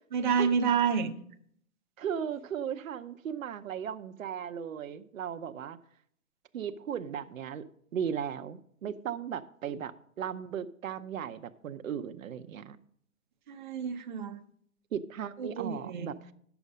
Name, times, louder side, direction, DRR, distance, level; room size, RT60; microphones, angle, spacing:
voice 1, 0.1-1.1 13.5-14.4 15.4-16.1, right 6 dB, 35° right, 6 dB, 0.6 m, -29 dB
voice 2, 2.0-5.8 6.5-7.6 7.9-12.8 14.9-16.3, right 8 dB, 65° right, 10 dB, 0.8 m, -36 dB
10.5 x 7.1 x 5.1 m, 0.65 s
hypercardioid pair, 160°, 43 cm